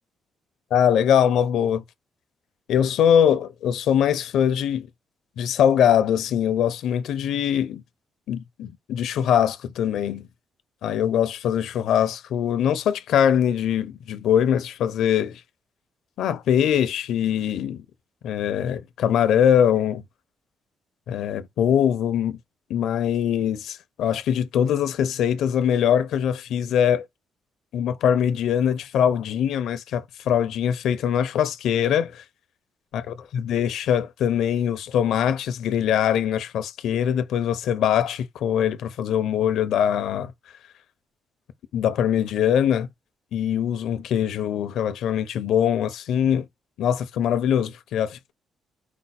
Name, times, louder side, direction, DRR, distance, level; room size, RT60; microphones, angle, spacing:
voice 1, 0.7-1.8 2.7-4.9 5.4-7.8 8.3-10.3 10.8-15.4 16.2-17.8 18.2-20.0 21.1-22.4 22.7-27.1 27.7-32.2 32.9-40.3 41.7-42.9 43.3-46.4 46.8-48.3, left 9 dB, 70° left, 0.7 m, -22 dB
5.2 x 2.1 x 4.2 m
cardioid pair, 165°, 0 cm